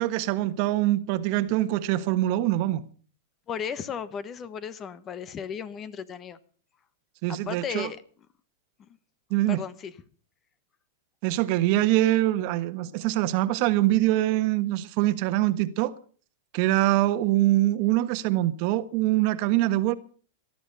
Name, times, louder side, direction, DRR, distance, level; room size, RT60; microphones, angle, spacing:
voice 1, 0.0-2.8 7.2-7.9 9.3-9.6 11.2-15.9 16.5-19.9, right 15 dB, 50° right, 1.4 m, -24 dB
voice 2, 3.5-6.4 7.3-8.0 8.8-8.9 9.5-9.9, left 7 dB, 25° left, 1.2 m, -35 dB
19.0 x 12.0 x 5.6 m
hypercardioid pair, 135°, 0 cm